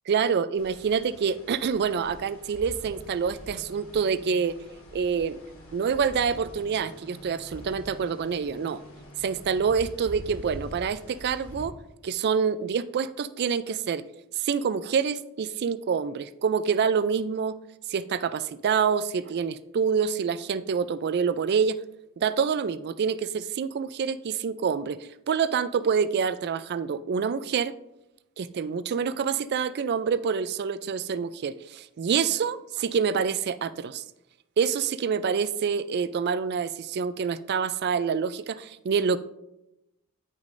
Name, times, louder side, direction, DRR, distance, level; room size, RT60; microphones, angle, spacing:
voice 1, 0.1-4.6 4.9-5.4 5.7-8.8 9.2-11.7 12.0-14.0 14.3-17.6 17.9-21.8 22.2-27.7 28.4-34.0 34.6-39.2, right 6 dB, 50° right, 15 dB, 0.4 m, -27 dB
sound 1, 0.6-11.7, equal, 75° left, 2.0 m, -45 dB
9.9 x 6.3 x 2.6 m, 0.88 s
head